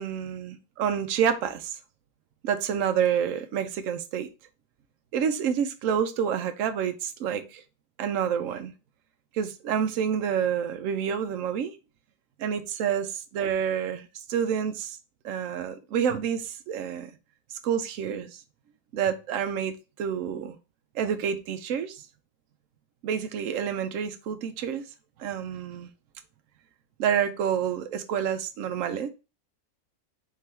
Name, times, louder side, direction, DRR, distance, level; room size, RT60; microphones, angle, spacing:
voice 1, 0.0-1.8 2.4-4.3 5.1-7.6 8.0-8.7 9.3-11.7 12.4-15.0 15.2-17.1 17.6-18.4 18.9-20.6 20.9-22.0 23.0-24.8 25.2-25.9 27.0-29.1, right 8 dB, 70° right, 1.0 m, -28 dB
3.8 x 3.3 x 4.2 m
omnidirectional pair, 1.5 m